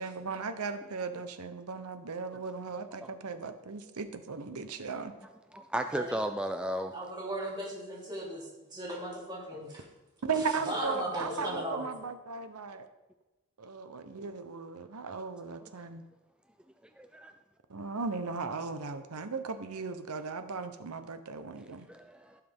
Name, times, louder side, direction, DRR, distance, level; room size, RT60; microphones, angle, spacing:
voice 1, 0.0-5.1 10.2-12.9 13.6-16.0 17.7-21.9, right 4 dB, 85° right, 9 dB, 0.9 m, -37 dB
voice 2, 5.5-6.9 15.6-15.7 17.0-17.3 21.9-22.4, equal, 5° right, 7 dB, 0.3 m, -34 dB
voice 3, 6.9-9.8 10.4-11.9, right 1 dB, 20° right, -5 dB, 2.8 m, -37 dB
15.5 x 5.7 x 3.6 m, 1.1 s
head